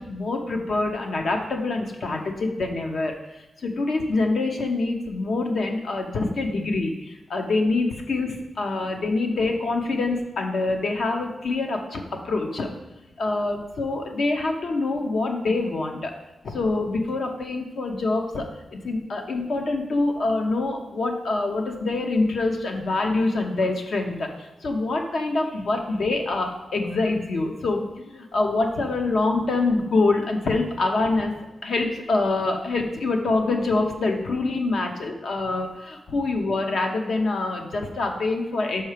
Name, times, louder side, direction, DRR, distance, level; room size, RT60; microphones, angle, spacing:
voice 1, 0.0-3.1 3.6-12.7 13.2-16.1 16.4-24.3 24.6-27.8 28.1-31.3 31.6-38.8, left 3 dB, 65° left, 3 dB, 0.8 m, -25 dB
5.7 x 4.3 x 5.0 m, 1.0 s
wide cardioid pair, 155°, 0 cm